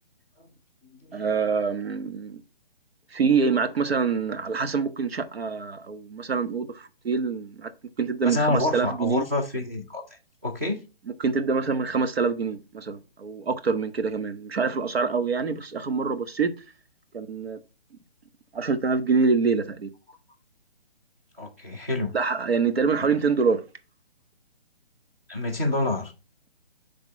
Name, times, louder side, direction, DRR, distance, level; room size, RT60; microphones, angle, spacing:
voice 1, 1.1-2.4 3.1-7.7 8.0-9.2 11.2-16.5 17.1-17.6 18.5-19.9 22.1-23.6, right 5 dB, 85° right, 1.2 m, -25 dB
voice 2, 8.2-10.0 10.4-10.8 21.4-22.1 25.3-26.1, left 2 dB, 15° right, 0.6 m, -27 dB
6.2 x 3.5 x 5.7 m
hypercardioid pair, 170°, 30 cm